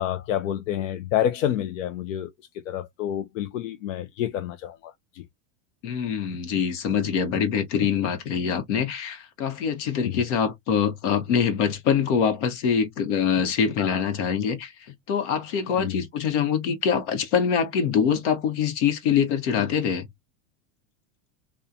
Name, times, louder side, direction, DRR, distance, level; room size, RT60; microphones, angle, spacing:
voice 1, 0.0-2.3 2.7-5.2 10.0-10.2 13.8-14.0 15.8-16.0, left 11 dB, 80° left, 0.6 m, -28 dB
voice 2, 5.8-20.1, left 7 dB, 65° left, 1.0 m, -24 dB
2.7 x 2.3 x 2.2 m
supercardioid pair, 175°, 38 cm